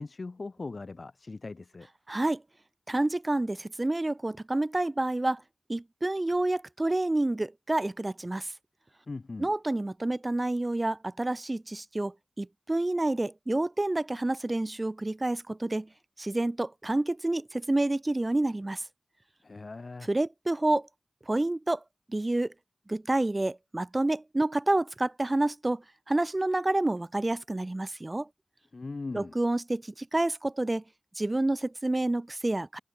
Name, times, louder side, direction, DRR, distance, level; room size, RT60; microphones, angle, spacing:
voice 1, 0.0-1.9 9.1-9.5 19.4-20.1 28.7-29.4, left 3 dB, 60° left, 5.2 m, -39 dB
voice 2, 2.1-2.4 2.9-5.4 5.7-8.5 9.4-15.9 16.2-18.8 20.1-20.9 21.3-21.8 22.1-22.5 22.9-28.3 29.1-30.8 31.2-32.8, right 2 dB, 30° right, 2.5 m, -28 dB
cardioid pair, 50°, 0 cm